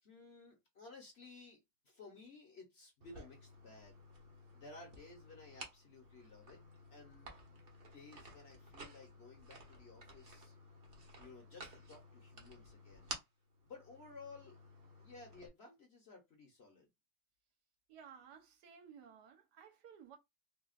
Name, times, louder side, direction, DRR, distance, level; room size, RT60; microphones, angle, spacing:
voice 1, 0.0-4.1 4.5-6.6 6.9-7.3 7.9-10.5 11.2-13.1 13.6-14.6 15.0-16.9, left 3 dB, 50° left, 0.9 m, -56 dB
sound 1, 3.0-15.5, right 1 dB, 45° right, 0.8 m, -54 dB
voice 2, 17.9-20.2, right 7 dB, 80° right, 1.3 m, -57 dB
3.5 x 2.3 x 2.4 m
omnidirectional pair, 1.8 m